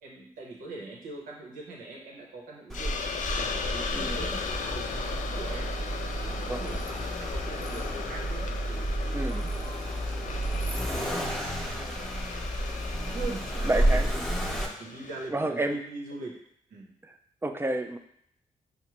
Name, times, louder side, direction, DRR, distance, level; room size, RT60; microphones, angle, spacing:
voice 1, 0.0-3.1 3.4-5.8 6.2-11.7 12.9-16.4 16.7-16.9, right 3 dB, 90° right, -2 dB, 0.8 m, -43 dB
Hiss, 2.7-15.3, left 6 dB, 65° left, 0.4 m, -37 dB
Accelerating revving vroom, 2.7-14.7, right 1 dB, ahead, 0.8 m, -31 dB
voice 2, 3.9-4.3 6.5-6.6 9.1-9.5 13.6-14.1 15.3-15.8 17.4-18.0, right 2 dB, 15° right, 6 dB, 0.4 m, -29 dB
4.6 x 2.1 x 2.9 m, 0.69 s
supercardioid pair, 50°, 14 cm